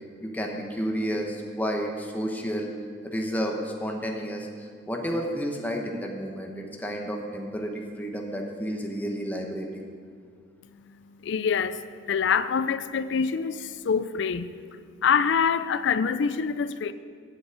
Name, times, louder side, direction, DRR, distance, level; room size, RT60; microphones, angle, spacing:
voice 1, 0.2-2.7 3.0-9.7, equal, 10° left, 1 dB, 1.1 m, -31 dB
voice 2, 11.2-16.9, left 6 dB, 65° left, 13 dB, 0.4 m, -26 dB
8.5 x 7.2 x 8.1 m, 2.1 s
head